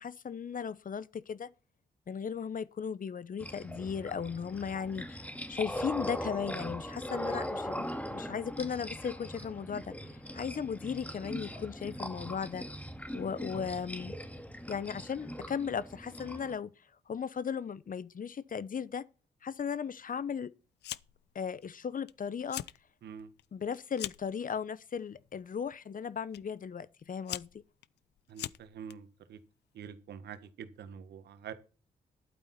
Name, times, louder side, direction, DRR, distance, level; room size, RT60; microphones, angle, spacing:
voice 1, 0.0-1.5 2.1-12.7 13.1-14.2 14.7-16.7 17.1-19.0 19.4-20.5 21.3-22.6 23.5-27.6, left 7 dB, 50° left, 1.0 m, -36 dB
sound 1, 3.4-16.6, equal, 10° left, 2.2 m, -40 dB
Fire, 20.8-21.3 21.6-22.1 22.4-22.8 23.2-24.3 25.1-25.5 26.3-26.4 27.0-28.9, left 13 dB, 75° left, 0.6 m, -41 dB
voice 2, 28.3-29.4 29.7-31.5, right 7 dB, 75° right, 1.6 m, -46 dB
12.0 x 9.0 x 4.4 m
hypercardioid pair, 45°, 17 cm